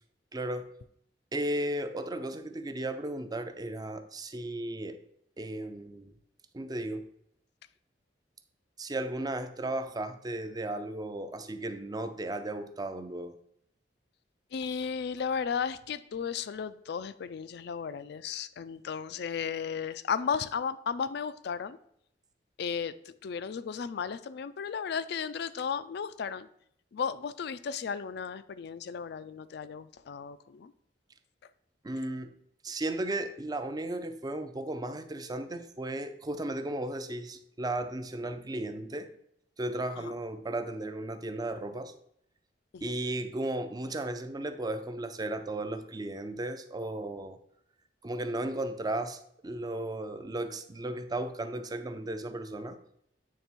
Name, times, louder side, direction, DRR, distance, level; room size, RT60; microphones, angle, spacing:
voice 1, 0.3-0.7 1.3-5.0 5.4-6.1 6.5-7.1 8.8-13.4 31.8-32.3 32.6-39.1 39.6-41.9 42.8-47.4 48.0-52.8, right 1 dB, 20° right, 8 dB, 0.5 m, -35 dB
voice 2, 14.5-21.8 22.6-22.9 23.2-26.5 26.9-30.7 40.0-40.1 42.7-42.9, left 6 dB, 65° left, 14 dB, 0.4 m, -34 dB
8.3 x 3.4 x 4.4 m, 0.71 s
head